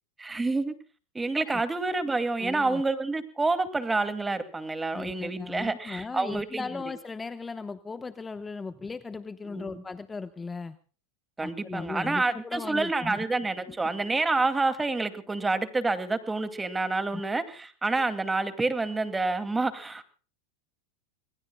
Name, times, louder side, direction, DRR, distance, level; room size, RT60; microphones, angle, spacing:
voice 1, 0.2-0.7 1.1-6.8 9.4-9.8 11.4-20.0, right 3 dB, 10° right, 10 dB, 2.4 m, -28 dB
voice 2, 2.4-2.8 4.9-10.8 11.4-13.2 13.7-13.8 17.1-17.3, left 4 dB, 15° left, 11 dB, 1.0 m, -37 dB
27.0 x 20.5 x 2.3 m, 0.40 s
hypercardioid pair, 115°, 0 cm